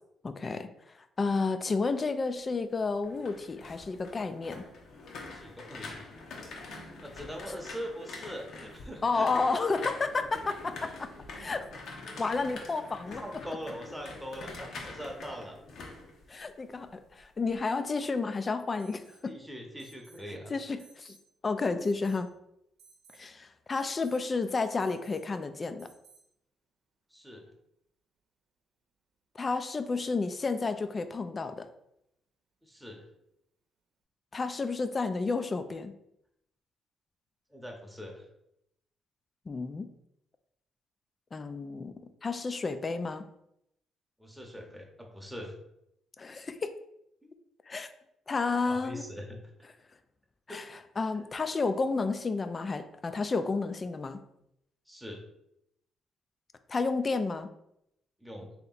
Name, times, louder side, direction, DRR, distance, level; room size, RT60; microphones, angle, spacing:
voice 1, 0.2-0.7 1.2-4.7 9.0-11.7 12.2-13.2 16.3-19.3 20.5-21.2 21.4-22.3 23.1-25.9 29.4-31.7 34.3-35.9 39.5-39.9 41.3-41.9 42.2-43.3 46.2-46.7 47.7-47.9 48.3-49.0 50.5-54.2 56.7-57.5, left 4 dB, 35° left, 10 dB, 0.4 m, -31 dB
sound 1, 2.9-16.9 17.2-17.6, left 3 dB, 70° left, 0.8 m, -45 dB
voice 2, 5.3-6.1 7.0-9.4 13.2-15.6 19.3-20.5 27.1-27.4 32.6-33.0 37.5-38.2 44.2-45.5 48.6-49.4 50.5-50.7 54.9-55.2 58.2-58.5, equal, ahead, 0 dB, 0.9 m, -42 dB
Alarm, 18.8-19.3 19.8-20.3 20.8-21.3 21.8-22.3 22.8-23.3 23.8-24.2 24.8-25.2 25.8-26.2, right 5 dB, 80° right, 0.7 m, -59 dB
3.3 x 2.9 x 4.0 m, 0.79 s
cardioid pair, 90°, 0 cm